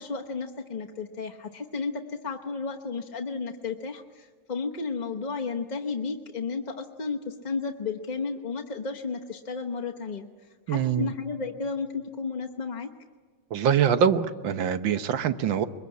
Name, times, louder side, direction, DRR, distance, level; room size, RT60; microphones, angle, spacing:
voice 1, 0.0-10.3 10.7-12.9, left 4 dB, 35° left, 2 dB, 0.8 m, -33 dB
voice 2, 10.7-11.1 13.5-15.7, right 8 dB, 90° right, 11 dB, 1.7 m, -24 dB
23.0 x 22.0 x 9.7 m, 1.5 s
omnidirectional pair, 2.0 m